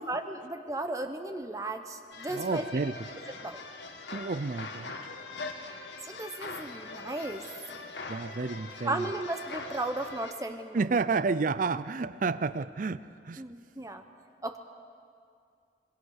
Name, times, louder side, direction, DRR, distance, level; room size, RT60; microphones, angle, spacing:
voice 1, 0.0-2.6 3.4-3.6 6.0-7.5 8.8-10.9 13.4-14.0 14.4-14.6, right 2 dB, 20° right, 7 dB, 0.9 m, -35 dB
sound 1, 2.1-10.3, left 3 dB, 85° left, 2.1 m, -42 dB
voice 2, 2.3-3.0 4.1-4.9 8.1-9.1 10.7-13.4, right 4 dB, 50° right, 16 dB, 0.5 m, -30 dB
27.0 x 21.0 x 6.5 m, 2.3 s
head